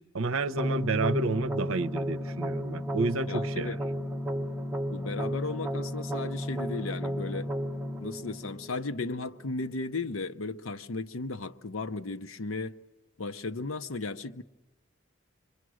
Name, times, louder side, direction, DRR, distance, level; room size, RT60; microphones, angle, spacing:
voice 1, 0.0-3.8, right 3 dB, 70° right, 0.7 m, -30 dB
sound 1, 0.6-9.5, equal, 5° right, 1.1 m, -33 dB
voice 2, 3.3-3.8 4.9-7.5 8.0-12.7 13.2-14.4, left 3 dB, 70° left, 0.8 m, -35 dB
27.0 x 24.0 x 6.3 m
head